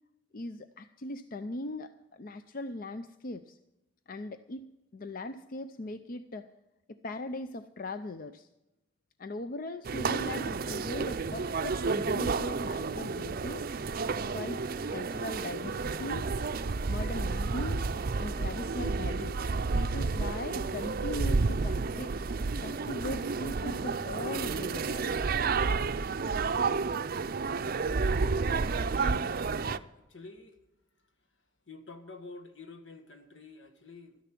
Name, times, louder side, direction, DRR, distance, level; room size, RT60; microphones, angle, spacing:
voice 1, 0.3-3.6 4.1-6.5 6.9-8.5 9.2-13.6 14.3-14.6 14.9-16.3 16.9-17.9 18.2-19.4 19.7-22.1 22.6-25.1, left 2 dB, 50° left, 0.5 m, -39 dB
sound 1, 9.8-29.8, right 4 dB, 50° right, 0.5 m, -31 dB
voice 2, 28.9-29.5 29.9-30.6 31.7-34.2, left 3 dB, 75° left, 1.6 m, -48 dB
13.0 x 10.5 x 6.0 m
head